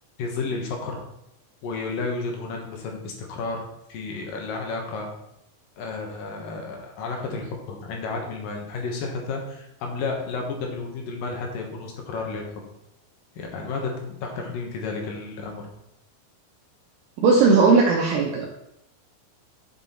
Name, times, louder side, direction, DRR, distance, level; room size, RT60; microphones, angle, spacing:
voice 1, 0.2-1.0 1.6-3.6 3.9-5.1 5.8-12.5 13.4-15.7, left 4 dB, 70° left, 1 dB, 3.0 m, -32 dB
voice 2, 17.2-18.5, right 4 dB, 75° right, -1 dB, 2.6 m, -18 dB
7.9 x 7.2 x 4.4 m, 0.82 s
omnidirectional pair, 4.3 m